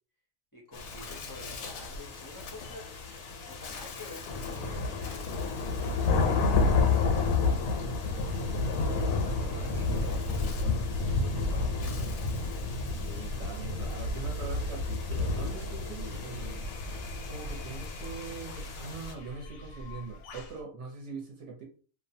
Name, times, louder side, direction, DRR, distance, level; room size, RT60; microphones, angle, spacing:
voice 1, 0.5-3.1 3.4-7.6 8.3-12.3, left 2 dB, 30° left, -4 dB, 0.4 m, -48 dB
sound 1, 0.7-19.1, left 3 dB, 90° left, 1.1 m, -31 dB
Bird, 0.7-20.6, left 5 dB, 65° left, 0.7 m, -50 dB
sound 2, 9.8-20.6, equal, 85° right, 1.1 m, -43 dB
voice 2, 13.0-16.6 17.2-21.6, right 4 dB, 60° right, -1 dB, 1.0 m, -42 dB
2.6 x 2.2 x 2.7 m, 0.41 s
omnidirectional pair, 1.5 m